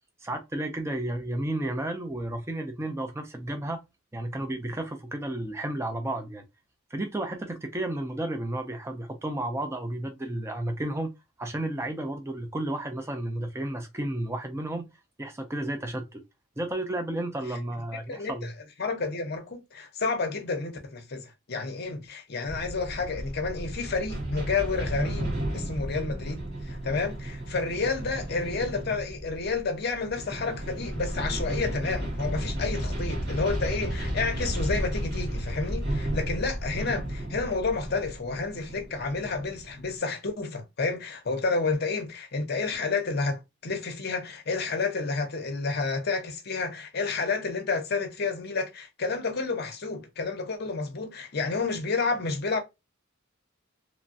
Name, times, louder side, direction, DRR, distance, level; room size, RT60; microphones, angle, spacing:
voice 1, 0.2-3.8 4.1-6.4 6.9-11.1 11.4-14.9 15.2-16.2 16.6-18.5, right 1 dB, 15° right, 0.4 m, -32 dB
voice 2, 18.1-18.5 18.8-52.6, left 4 dB, 50° left, 0.6 m, -30 dB
sound 1, 22.5-40.0, right 1 dB, 50° right, 1.5 m, -33 dB
3.0 x 2.2 x 2.5 m
head